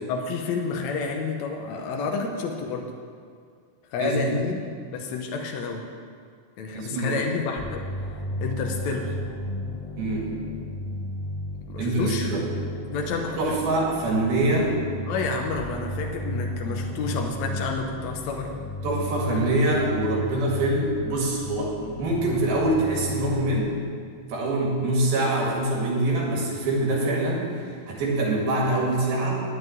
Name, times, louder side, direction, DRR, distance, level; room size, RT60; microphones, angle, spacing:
voice 1, 0.1-2.9 3.9-5.9 6.6-8.1 8.4-9.2 11.7-12.3 12.9-13.6 15.1-18.5, left 4 dB, 75° left, 2 dB, 1.7 m, -30 dB
voice 2, 4.0-4.3 6.7-7.2 10.0-10.3 11.8-12.4 13.4-14.7 18.8-23.7 24.3-29.4, right 2 dB, 80° right, -3 dB, 3.9 m, -24 dB
sound 1, 7.6-23.6, left 1 dB, 50° left, 2.2 m, -34 dB
10.0 x 7.8 x 9.2 m, 2.1 s
omnidirectional pair, 4.3 m